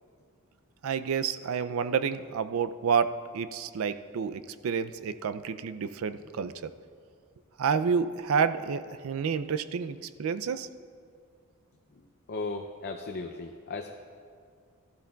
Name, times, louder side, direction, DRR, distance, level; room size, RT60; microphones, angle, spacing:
voice 1, 0.8-6.7 7.6-10.7, right 6 dB, 70° right, 12 dB, 0.4 m, -29 dB
voice 2, 12.3-13.9, left 3 dB, 45° left, 4 dB, 0.5 m, -36 dB
14.0 x 12.0 x 2.3 m, 2.2 s
head